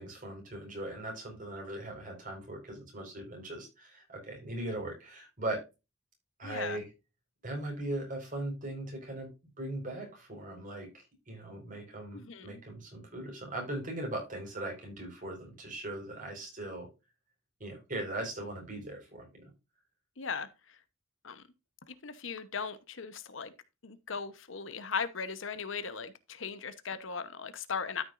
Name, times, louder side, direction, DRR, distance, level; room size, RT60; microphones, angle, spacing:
voice 1, 0.0-5.6 6.4-6.9 7.4-10.9 11.3-16.9 17.6-19.5, right 1 dB, 40° right, 4.7 m, -39 dB
voice 2, 6.4-6.8 12.1-12.6 20.2-20.5 21.2-21.4 21.9-23.5 23.8-28.0, left 5 dB, 70° left, 0.9 m, -38 dB
13.0 x 6.2 x 2.5 m
head